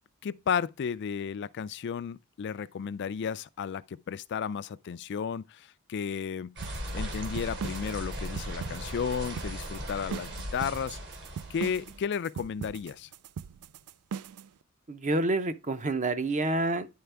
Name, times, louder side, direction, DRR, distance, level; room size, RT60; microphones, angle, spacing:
voice 1, 0.2-6.6 6.9-11.0 11.5-13.1, left 7 dB, 50° left, 0.3 m, -33 dB
sound 1, 6.6-12.0, equal, 55° right, 2.8 m, -38 dB
sound 2, 6.6-14.5, right 7 dB, 75° right, 0.4 m, -40 dB
voice 2, 14.9-16.9, right 2 dB, 35° right, 0.8 m, -28 dB
10.5 x 4.3 x 3.4 m
head